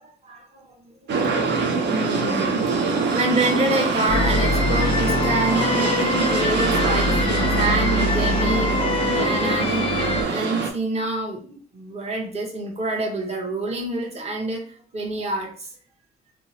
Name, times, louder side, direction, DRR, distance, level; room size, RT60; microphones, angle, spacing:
voice 1, 0.0-15.7, right 2 dB, 30° right, 0 dB, 0.8 m, -27 dB
sound 1, 1.1-10.7, right 4 dB, 60° right, 0.5 m, -24 dB
sound 2, 4.1-10.2, left 3 dB, 30° left, 0.4 m, -24 dB
2.8 x 2.0 x 2.6 m, 0.43 s
cardioid pair, 90°, 20 cm